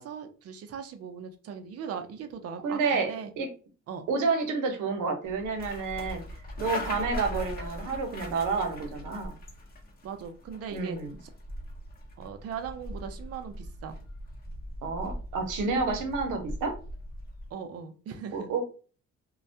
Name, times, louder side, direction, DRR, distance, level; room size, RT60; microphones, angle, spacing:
voice 1, 0.0-3.3 3.9-4.1 10.0-11.3 12.2-14.0 17.5-18.5, right 7 dB, 55° right, 7 dB, 0.5 m, -39 dB
voice 2, 2.6-3.5 4.1-6.2 6.6-9.3 10.7-11.2 14.8-16.7 18.3-18.6, right 4 dB, 85° right, 4 dB, 0.7 m, -29 dB
sound 1, 5.3-17.5, left 1 dB, 30° left, 0.8 m, -40 dB
2.2 x 2.1 x 2.6 m, 0.38 s
cardioid pair, 90°, 30 cm